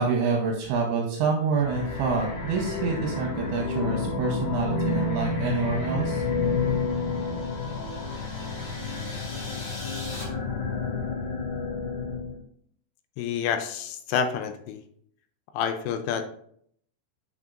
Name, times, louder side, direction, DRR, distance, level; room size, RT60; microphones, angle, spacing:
voice 1, 0.0-6.2, right 4 dB, 75° right, 0 dB, 3.0 m, -27 dB
sound 1, 1.5-12.3, left 4 dB, 60° left, 3.4 m, -30 dB
sound 2, 6.1-10.2, left 1 dB, 40° left, 3.9 m, -44 dB
voice 2, 13.2-14.8 15.5-16.2, left 7 dB, 80° left, 8 dB, 3.1 m, -28 dB
8.6 x 6.4 x 2.5 m, 0.64 s
omnidirectional pair, 6.0 m